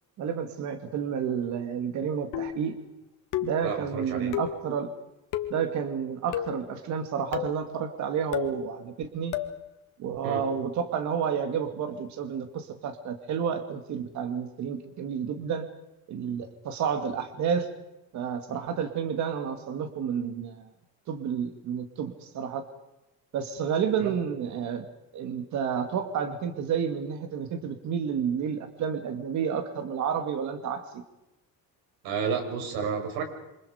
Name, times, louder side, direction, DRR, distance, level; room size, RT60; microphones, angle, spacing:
voice 1, 0.2-2.8 3.4-4.9 5.5-9.3 10.0-15.6 16.1-17.7 18.1-20.7 21.1-22.6 23.3-24.9 25.1-31.0, right 7 dB, 55° right, 7 dB, 2.5 m, -30 dB
sound 1, 2.3-2.7 3.3-3.7 4.3-4.6 5.3-5.6 6.3-6.7 7.3-7.6 8.3-8.6 9.3-9.6, left 11 dB, 60° left, 2.1 m, -32 dB
voice 2, 3.6-4.4 10.2-10.5 24.0-24.1 32.0-33.2, right 6 dB, 80° right, 5 dB, 5.9 m, -31 dB
28.0 x 26.5 x 5.1 m, 0.91 s
cardioid pair, 165°, 35 cm